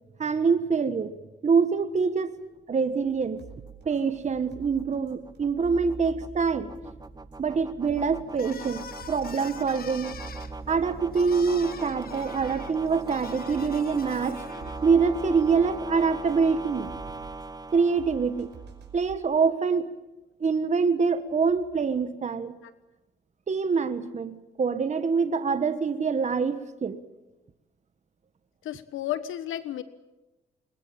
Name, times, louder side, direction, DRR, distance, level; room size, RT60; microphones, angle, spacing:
voice 1, 0.2-1.1 1.4-2.4 2.7-3.5 3.8-6.9 7.4-10.1 10.7-14.4 14.8-16.9 17.7-18.5 18.9-19.9 20.4-22.6 23.5-27.0, right 5 dB, 35° right, 10 dB, 1.5 m, -25 dB
sound 1, 2.7-18.9, right 3 dB, 20° right, 1.0 m, -41 dB
sound 2, 3.0-19.2, right 4 dB, 60° right, 5.2 m, -47 dB
sound 3, 8.3-15.0, left 6 dB, 50° left, 1.6 m, -44 dB
voice 2, 28.6-29.8, left 12 dB, 80° left, 13 dB, 1.3 m, -32 dB
21.5 x 21.5 x 8.7 m, 1.1 s
cardioid pair, 90°, 20 cm